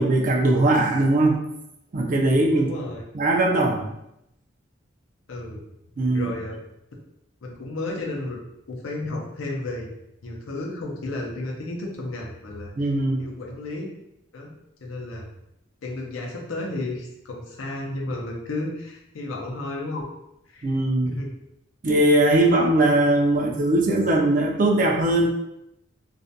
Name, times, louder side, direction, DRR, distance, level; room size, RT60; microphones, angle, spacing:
voice 1, 0.0-1.4 1.9-2.7 3.1-3.9 6.0-6.3 12.8-13.2 20.6-21.1 21.8-25.3, right 1 dB, 45° right, 1 dB, 0.4 m, -20 dB
voice 2, 2.6-3.0 5.3-5.6 6.1-6.6 7.4-8.4 8.7-9.9 10.2-12.9 13.2-13.9 14.3-14.5 14.8-15.2 15.8-20.1 20.5-20.8 21.0-21.3, left 2 dB, 90° left, -1 dB, 0.5 m, -32 dB
2.4 x 2.1 x 2.6 m, 0.82 s
head